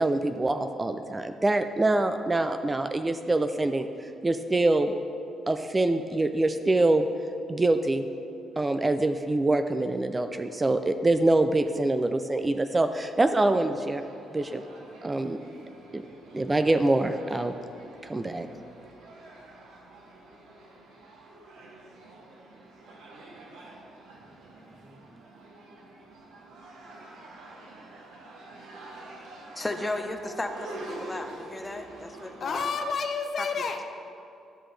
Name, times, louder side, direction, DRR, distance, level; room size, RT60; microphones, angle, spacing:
voice 1, 0.0-4.9 5.5-7.1 7.5-8.1 8.6-14.0 14.3-14.6 15.0-15.4 15.9-16.0 16.3-17.5 18.0-18.5, right 2 dB, 20° right, 8 dB, 0.3 m, -25 dB
sound 1, 14.0-32.6, right 2 dB, 90° right, 1.1 m, -46 dB
voice 2, 29.6-32.7 33.4-33.5, left 2 dB, 15° left, 5 dB, 0.7 m, -34 dB
voice 3, 32.4-33.8, left 5 dB, 55° left, 5 dB, 0.7 m, -30 dB
11.0 x 6.0 x 3.3 m, 2.6 s
cardioid pair, 90°, 0 cm